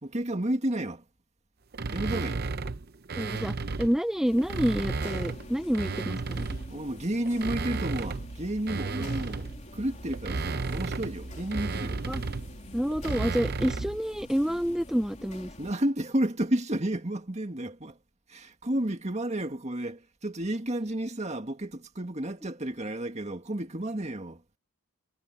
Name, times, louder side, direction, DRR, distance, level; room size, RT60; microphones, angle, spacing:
voice 1, 0.0-1.0 1.9-2.4 6.7-12.0 15.6-18.0 18.3-24.4, right 1 dB, 30° right, 1.9 m, -31 dB
sound 1, 1.7-4.0 4.4-6.8 7.3-14.0, right 3 dB, 45° right, 0.7 m, -33 dB
voice 2, 3.2-6.4 12.1-12.2 12.7-15.5, equal, ahead, 0.5 m, -28 dB
sound 2, 4.2-15.7, left 1 dB, 30° left, 3.6 m, -46 dB
head